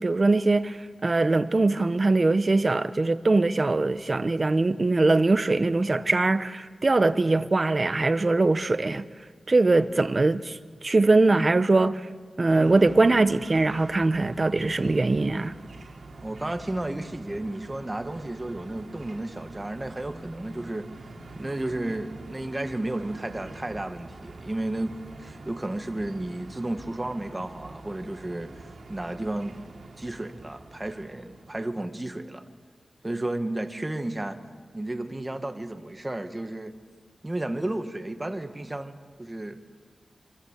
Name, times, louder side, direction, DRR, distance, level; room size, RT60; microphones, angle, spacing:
voice 1, 0.0-9.1 9.5-12.0 12.4-15.5, right 3 dB, 35° right, 1.0 m, -22 dB
sound 1, 12.5-31.6, right 2 dB, 70° right, 3.4 m, -45 dB
voice 2, 16.2-20.9 21.3-24.9 25.2-29.5 30.0-32.4 33.0-34.4 34.7-36.7 37.2-39.8, right 1 dB, 20° right, 1.7 m, -33 dB
27.0 x 25.5 x 8.4 m
wide cardioid pair, 110°, 0 cm